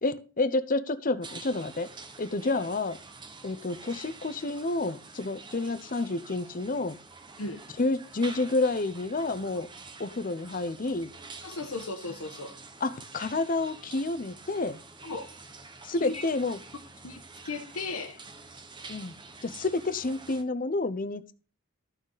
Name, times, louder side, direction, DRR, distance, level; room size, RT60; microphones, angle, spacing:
voice 1, 0.0-1.9 2.2-3.0 3.4-7.0 7.8-9.7 10.0-11.1 12.8-14.8 15.8-16.6 18.9-19.1 19.4-21.3, left 2 dB, 40° left, 0.7 m, -29 dB
sound 1, 1.2-20.4, right 4 dB, 20° right, 0.9 m, -47 dB
voice 2, 11.4-12.6 15.0-15.2 15.9-16.2 17.0-18.2, left 3 dB, 80° left, 1.2 m, -36 dB
13.5 x 6.4 x 4.0 m
head